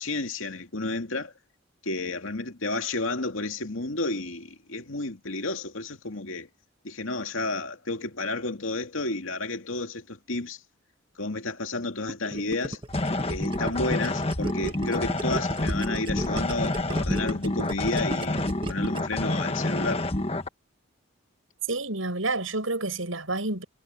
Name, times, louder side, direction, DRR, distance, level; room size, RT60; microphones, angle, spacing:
voice 1, 0.0-1.3 1.8-6.5 6.8-10.6 11.2-12.8 13.3-18.4 18.7-20.1, left 2 dB, 85° left, 2.3 m, -31 dB
Gurgling, 12.1-19.2, right 1 dB, 25° right, 1.5 m, -34 dB
sound 1, 12.9-20.5, left 2 dB, 30° left, 1.4 m, -28 dB
voice 2, 21.7-23.6, right 2 dB, 85° right, 7.5 m, -29 dB
head